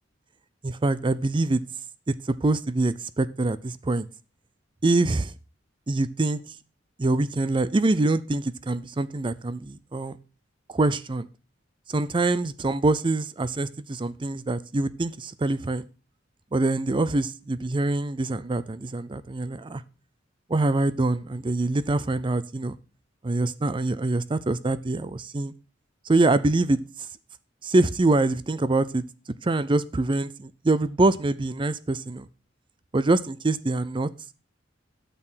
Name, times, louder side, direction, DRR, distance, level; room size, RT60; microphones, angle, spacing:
voice 1, 0.6-1.6 2.1-2.2 2.4-4.1 4.8-5.3 5.9-6.4 7.0-10.2 10.7-11.3 11.9-15.9 16.5-19.8 20.5-22.8 23.2-25.5 26.1-26.8 27.6-29.0 29.4-32.3 32.9-34.1, right 2 dB, 25° right, 0.5 m, -24 dB
9.0 x 6.8 x 6.1 m
head